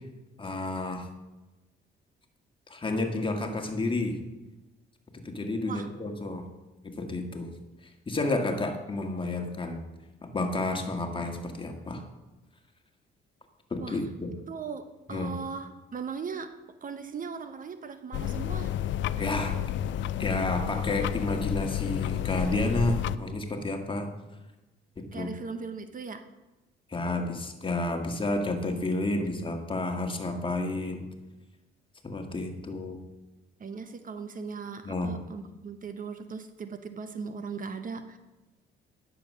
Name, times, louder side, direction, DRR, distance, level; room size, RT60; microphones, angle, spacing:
voice 1, 0.4-1.1 2.7-4.2 5.3-6.5 6.8-7.5 8.1-9.8 10.2-12.0 13.7-14.3 15.1-15.3 19.2-19.6 20.2-24.1 25.1-25.3 26.9-31.0 32.0-33.0 34.8-35.1, left 2 dB, 25° left, 4 dB, 1.7 m, -30 dB
voice 2, 14.5-16.5 16.8-18.8 25.1-26.2 33.6-38.2, right 5 dB, 45° right, 9 dB, 0.8 m, -38 dB
sound 1, 18.1-23.2, left 10 dB, 70° left, 0.4 m, -30 dB
10.5 x 7.0 x 6.3 m, 1.1 s
cardioid pair, 90°, 20 cm